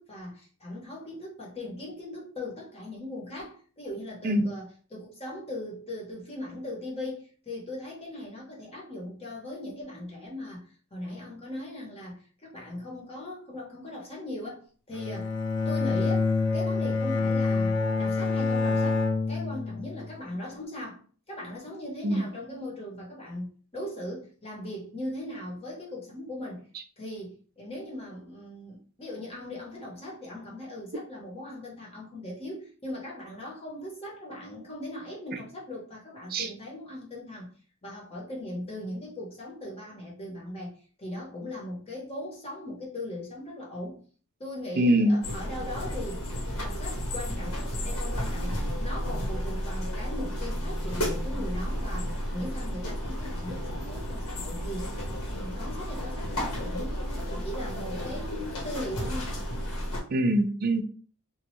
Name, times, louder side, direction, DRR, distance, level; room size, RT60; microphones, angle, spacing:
voice 1, 0.0-15.3 15.7-21.0 21.3-26.6 27.0-37.5 37.8-44.0 44.4-46.3 46.6-54.9 55.3-59.3, left 1 dB, 25° left, -3 dB, 0.8 m, -39 dB
Bowed string instrument, 14.9-20.2, left 4 dB, 55° left, 0.4 m, -27 dB
voice 2, 44.8-45.2 60.1-60.8, right 1 dB, 45° right, 6 dB, 0.4 m, -23 dB
sound 1, 45.2-60.0, equal, 80° left, 1.1 m, -32 dB
3.0 x 2.2 x 3.0 m, 0.42 s
head